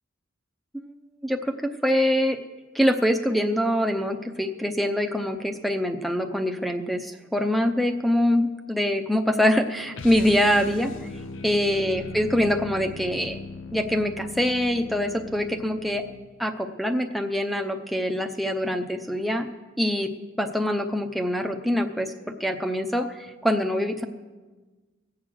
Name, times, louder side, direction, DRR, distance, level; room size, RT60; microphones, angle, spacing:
voice 1, 1.2-2.4 2.7-10.9 11.4-13.4 13.7-16.0 16.4-19.5 19.8-20.1 20.4-22.1 22.4-24.0, equal, ahead, 7 dB, 0.6 m, -24 dB
sound 1, 9.9-16.4, left 4 dB, 80° left, 0.6 m, -39 dB
18.0 x 7.6 x 6.4 m, 1.3 s
head